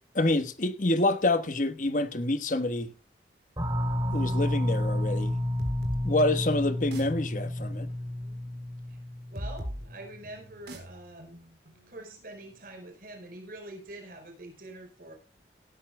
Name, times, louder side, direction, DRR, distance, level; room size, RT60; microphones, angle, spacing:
voice 1, 0.1-2.9 4.1-5.4 6.0-7.9, left 2 dB, 45° left, 1.2 m, -27 dB
sound 1, 3.6-9.9, left 1 dB, 20° right, 3.1 m, -30 dB
sound 2, 5.6-13.0, equal, 70° right, 4.0 m, -42 dB
voice 2, 6.3-6.7 8.9-9.0 9.3-11.4 11.9-15.1, right 1 dB, 50° right, 4.5 m, -45 dB
18.0 x 13.0 x 2.2 m
head